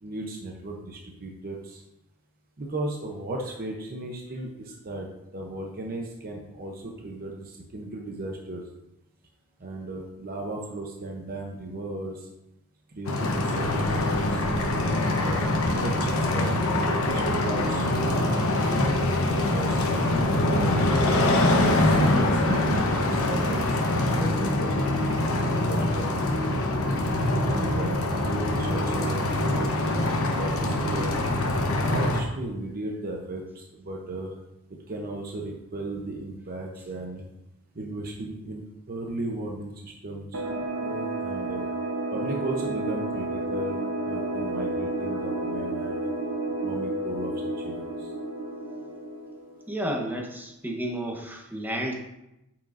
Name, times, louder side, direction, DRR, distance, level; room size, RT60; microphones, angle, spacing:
voice 1, 0.0-1.8 2.6-8.6 9.6-12.3 12.9-14.4 14.9-18.3 18.8-20.8 21.5-24.7 25.0-26.7 27.4-31.2 31.8-34.4 34.7-37.3 37.7-40.4 40.8-41.6 42.1-46.1 46.6-48.1, right 2 dB, 45° right, 0 dB, 0.8 m, -36 dB
sound 1, 13.0-32.2, left 1 dB, 65° left, 1.0 m, -24 dB
sound 2, 40.3-49.7, right 2 dB, 75° right, 1.0 m, -31 dB
voice 2, 49.7-51.9, right 1 dB, 10° right, 1 dB, 1.0 m, -31 dB
8.9 x 5.9 x 2.6 m, 0.90 s
head